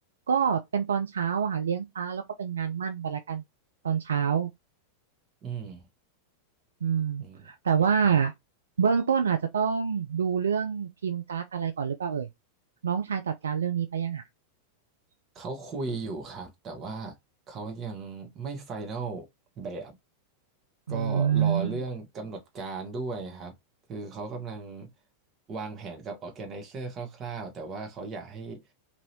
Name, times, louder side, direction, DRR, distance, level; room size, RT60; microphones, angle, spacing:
voice 1, 0.3-3.4 3.8-4.5 6.8-8.3 8.8-12.3 12.8-14.2 20.9-21.8, right 7 dB, 70° right, 0.3 m, -27 dB
voice 2, 5.4-5.8 7.2-7.5 7.8-8.2 15.3-17.2 17.5-19.3 19.6-19.9 20.9-23.6 23.9-24.9 25.5-28.6, right 4 dB, 25° right, 1.0 m, -36 dB
3.0 x 2.6 x 2.7 m
figure-of-eight pair, 90°, 0 cm